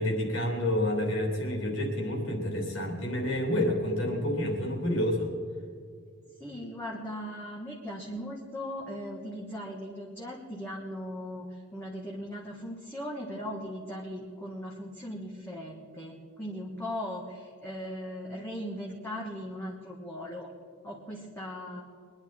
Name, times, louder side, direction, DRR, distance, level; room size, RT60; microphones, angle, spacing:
voice 1, 0.0-5.3, left 1 dB, 65° left, 1 dB, 3.3 m, -29 dB
voice 2, 6.4-20.5 20.8-21.8, equal, 10° left, -3 dB, 1.5 m, -38 dB
23.5 x 10.5 x 4.4 m, 2.2 s
head